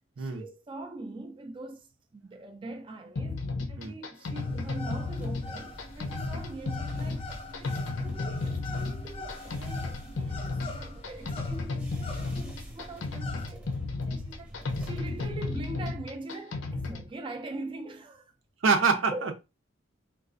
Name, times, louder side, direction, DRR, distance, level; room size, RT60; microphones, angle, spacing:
voice 1, 0.2-3.4 3.7-7.3 7.6-18.3 19.1-19.3, right 2 dB, 25° right, 0.3 m, -43 dB
sound 1, 3.2-17.1, left 3 dB, 75° left, 0.5 m, -34 dB
sound 2, 4.3-13.5, left 3 dB, 30° left, 0.5 m, -45 dB
sound 3, 5.2-15.6, equal, 10° right, 0.8 m, -47 dB
voice 2, 18.6-19.3, right 5 dB, 85° right, 0.6 m, -25 dB
3.9 x 2.3 x 2.5 m
head